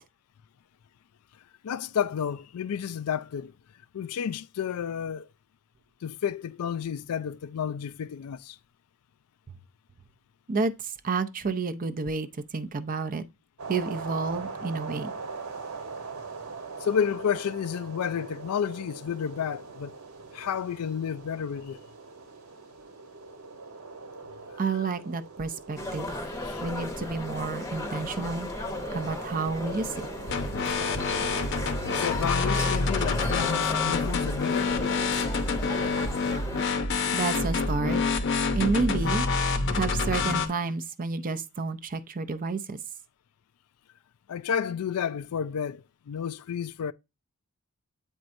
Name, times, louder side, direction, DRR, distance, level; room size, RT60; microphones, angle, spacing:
voice 1, 1.6-3.5 3.9-5.3 6.0-8.6 16.8-19.9 20.3-21.8 26.4-26.6 32.0-34.8 44.3-46.9, left 8 dB, 80° left, 0.4 m, -31 dB
voice 2, 10.5-12.3 12.5-13.2 13.7-15.1 24.6-26.2 26.6-28.5 28.9-29.9 37.1-38.0 38.5-39.3 39.7-42.8, right 4 dB, 40° right, 0.6 m, -30 dB
sound 1, 13.6-33.5, right 4 dB, 75° right, 1.2 m, -42 dB
sound 2, 25.8-36.6, left 2 dB, 15° left, 0.8 m, -36 dB
sound 3, 30.3-40.5, left 4 dB, 55° left, 0.7 m, -27 dB
8.5 x 4.5 x 2.6 m
head